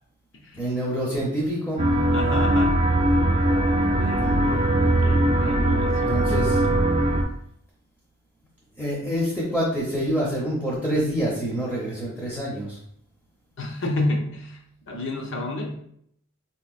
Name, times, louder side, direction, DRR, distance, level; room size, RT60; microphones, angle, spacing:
voice 1, 0.5-2.1 4.0-4.7 5.7-6.6 8.8-12.8, equal, 10° left, -5 dB, 0.7 m, -27 dB
sound 1, 1.8-7.2, right 1 dB, 25° right, 0.4 m, -21 dB
voice 2, 2.1-2.8 4.0-6.7 13.6-14.6 14.9-15.7, left 2 dB, 55° left, 1 dB, 0.7 m, -30 dB
4.1 x 2.9 x 2.4 m, 0.69 s
head